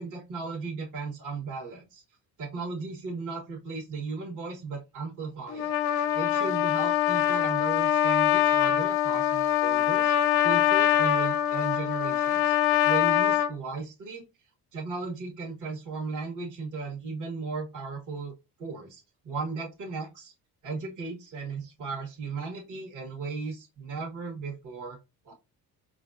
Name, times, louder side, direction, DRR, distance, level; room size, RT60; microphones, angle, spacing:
voice 1, 0.0-2.0 2.4-5.7 6.1-10.1 10.4-12.6 12.8-14.2 14.7-18.3 18.6-20.3 20.6-25.0 25.2-25.3, right 4 dB, 55° right, -3 dB, 1.4 m, -36 dB
Trumpet, 5.5-13.5, left 11 dB, 75° left, 0.7 m, -24 dB
4.9 x 2.4 x 2.5 m, 0.24 s
cardioid pair, 95°, 38 cm